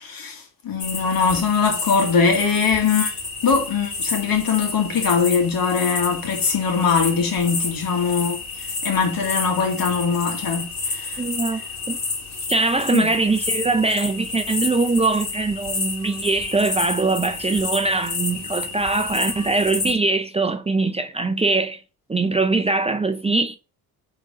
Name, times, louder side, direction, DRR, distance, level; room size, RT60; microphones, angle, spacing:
voice 1, 0.0-3.2 3.4-8.4 8.8-11.2 12.9-13.1, left 5 dB, 65° left, 2.1 m, -21 dB
sound 1, 0.8-19.9, left 4 dB, 45° left, 2.2 m, -30 dB
voice 2, 11.2-11.6 11.9-12.0 12.5-21.8 22.1-23.6, right 3 dB, 15° right, 0.6 m, -22 dB
5.2 x 3.9 x 5.0 m
supercardioid pair, 70°, 38 cm